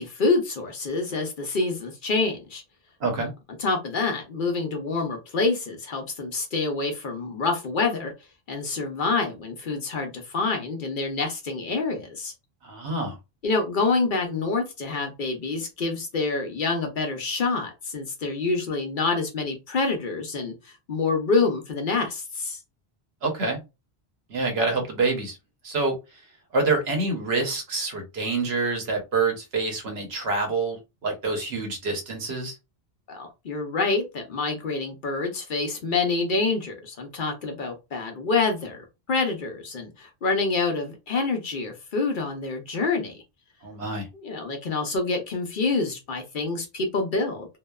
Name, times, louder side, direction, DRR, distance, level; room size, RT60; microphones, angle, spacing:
voice 1, 0.0-2.6 3.6-8.1 8.5-12.3 13.4-22.6 33.1-43.2 44.1-47.6, left 3 dB, 55° left, 0.7 m, -27 dB
voice 2, 12.6-13.1 23.2-23.6 24.3-25.4 25.6-25.9 26.5-30.8 31.0-32.5 43.6-44.1, right 3 dB, 75° right, 1.1 m, -26 dB
2.9 x 2.0 x 2.2 m
omnidirectional pair, 1.1 m